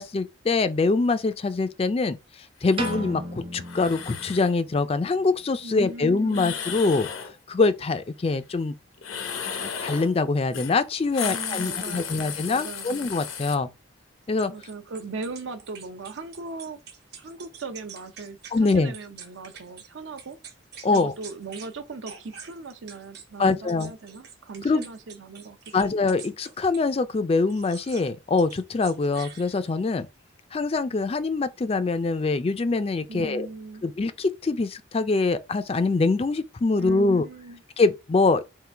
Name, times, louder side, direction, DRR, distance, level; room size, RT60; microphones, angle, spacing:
voice 1, 0.0-2.2 2.6-7.1 7.5-8.7 9.6-13.7 14.3-14.5 18.5-18.9 20.8-21.1 23.4-23.9 24.6-24.9 25.7-30.1 30.5-33.5 33.8-37.3 37.8-38.6, left 3 dB, 30° left, 0.3 m, -24 dB
sound 1, 2.6-3.0 3.6-4.5 6.3-7.3 9.0-10.1 10.5-10.7 11.0-13.5, left 7 dB, 90° left, 0.8 m, -34 dB
Piano, 2.8-5.0, right 1 dB, 25° right, 0.7 m, -35 dB
voice 2, 5.6-6.6 11.2-13.0 14.5-16.8 17.2-20.4 20.9-26.0 33.1-33.8 36.8-37.6, right 3 dB, 75° right, 0.7 m, -39 dB
sound 2, 14.4-19.9 20.2-21.7 22.0-26.9 27.5-28.1 28.4-29.9, right 7 dB, 55° right, 1.1 m, -45 dB
3.7 x 2.4 x 4.4 m
head